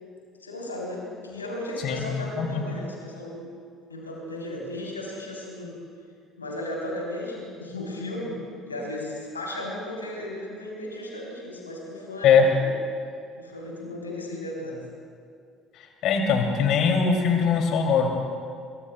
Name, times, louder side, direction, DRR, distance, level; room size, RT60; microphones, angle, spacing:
voice 1, 0.4-3.5 3.9-5.8 6.4-8.4 8.7-12.7 13.4-14.8, left 1 dB, 90° left, -3 dB, 3.4 m, -35 dB
voice 2, 16.0-18.1, left 6 dB, 55° left, 2 dB, 2.6 m, -21 dB
24.0 x 23.0 x 2.2 m, 2.3 s
figure-of-eight pair, 55°, 0 cm